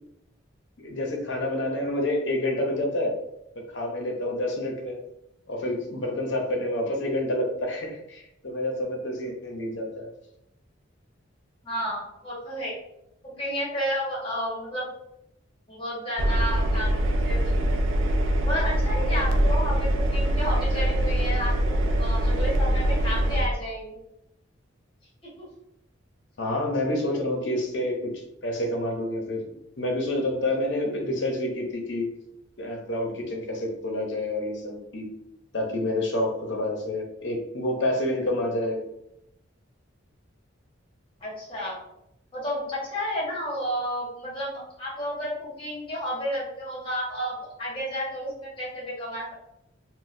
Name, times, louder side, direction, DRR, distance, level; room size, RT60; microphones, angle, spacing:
voice 1, 0.8-3.1 3.7-5.0 5.5-10.1 26.4-28.1 28.4-29.4 29.8-32.1 32.6-35.1 35.5-38.8, left 1 dB, 60° left, 1 dB, 0.7 m, -28 dB
voice 2, 11.6-12.7 13.2-14.9 15.7-17.5 18.4-24.0 25.4-25.5 27.1-27.2 41.2-41.8 42.3-49.3, equal, 25° left, -6 dB, 1.2 m, -31 dB
Engine, 16.2-23.5, right 1 dB, 80° right, 0.4 m, -23 dB
3.9 x 2.2 x 2.6 m, 0.82 s
head